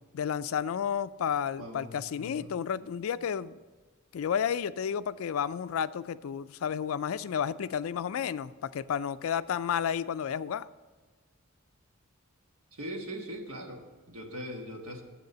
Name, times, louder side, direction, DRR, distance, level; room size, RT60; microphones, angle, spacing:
voice 1, 0.1-3.6 4.1-10.7, left 8 dB, 70° left, 0.4 m, -31 dB
voice 2, 1.6-2.5 12.7-15.0, equal, 80° right, 1.5 m, -41 dB
7.8 x 6.6 x 6.7 m
head